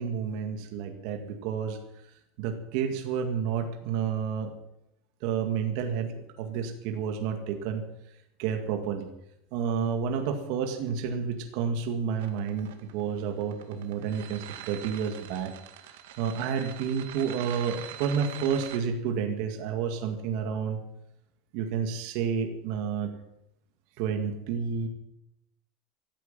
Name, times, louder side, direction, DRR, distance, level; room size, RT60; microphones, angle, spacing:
voice 1, 0.0-1.8 2.4-4.5 5.2-7.8 8.4-9.1 9.5-15.5 15.8-20.8 21.5-23.1 24.0-24.9, right 7 dB, 50° right, 4 dB, 2.0 m, -30 dB
sound 1, 12.2-18.8, right 11 dB, 80° right, 2.2 m, -43 dB
14.5 x 13.0 x 7.4 m, 0.82 s
supercardioid pair, 175°, 0 cm